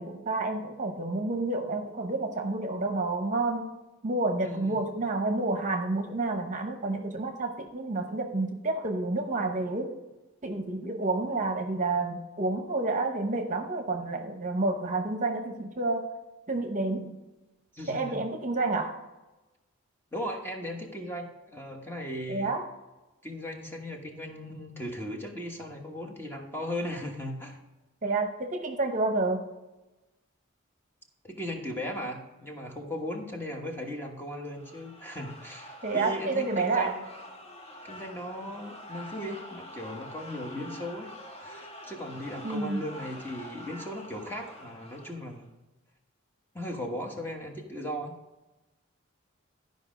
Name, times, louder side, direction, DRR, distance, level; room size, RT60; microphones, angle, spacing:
voice 1, 0.0-3.7 4.0-9.9 10.4-16.0 16.5-17.2 17.9-18.9 22.3-22.6 28.0-29.4 35.8-36.9 42.4-42.8, right 2 dB, 35° right, 5 dB, 0.9 m, -29 dB
voice 2, 4.4-4.8 17.7-18.2 20.1-22.5 23.2-27.6 31.2-37.0 37.8-41.1 41.4-45.5 46.5-48.1, equal, 10° left, 2 dB, 1.2 m, -37 dB
sound 1, 34.5-45.4, equal, 30° left, 1.4 m, -46 dB
12.5 x 5.3 x 5.1 m, 1.1 s
head